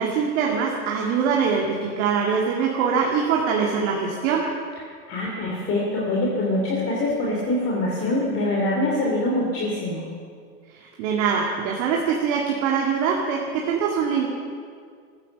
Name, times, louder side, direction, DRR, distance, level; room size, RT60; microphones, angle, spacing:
voice 1, 0.0-4.5 10.7-14.3, right 6 dB, 50° right, -2 dB, 2.3 m, -23 dB
voice 2, 5.1-10.0, left 1 dB, 30° left, -3 dB, 3.1 m, -24 dB
18.0 x 14.5 x 5.4 m, 2.1 s
hypercardioid pair, 135°, 46 cm